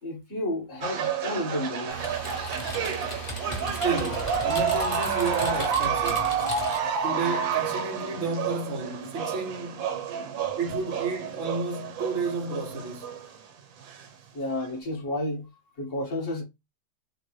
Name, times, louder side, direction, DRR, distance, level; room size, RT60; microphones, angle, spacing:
voice 1, 0.0-2.0 14.3-15.5 15.8-16.4, left 1 dB, 40° left, 2.3 m, -31 dB
sound 1, 0.8-13.4 13.8-14.0 14.6-14.7, right 6 dB, 80° right, 1.6 m, -30 dB
sound 2, 1.9-7.1, right 3 dB, 60° left, 2.9 m, -40 dB
Typing, 2.0-6.9, left 2 dB, 20° left, 0.9 m, -38 dB
voice 2, 3.8-6.3 7.0-9.9 10.6-13.1, right 4 dB, 50° right, 0.9 m, -31 dB
6.4 x 2.4 x 3.2 m
omnidirectional pair, 2.1 m